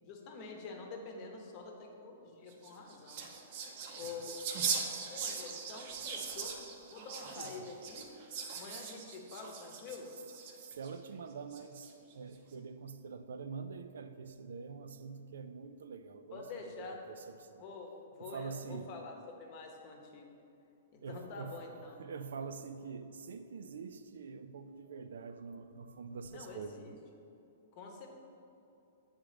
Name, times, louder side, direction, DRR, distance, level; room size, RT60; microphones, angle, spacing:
voice 1, 0.0-3.3 3.9-4.4 5.1-8.1 8.6-10.1 16.3-17.1 17.6-20.4 20.9-22.0 26.3-27.0 27.7-28.1, left 4 dB, 35° left, 2 dB, 0.9 m, -47 dB
sound 1, 2.5-10.9 11.5-12.1, right 6 dB, 45° right, 0.7 m, -40 dB
voice 2, 7.4-7.7 10.7-16.4 17.1-17.7 18.2-18.9 21.0-21.6 22.0-26.9, right 5 dB, 85° right, 9 dB, 0.4 m, -45 dB
7.5 x 3.7 x 5.0 m, 2.7 s
hypercardioid pair, 155°, 0 cm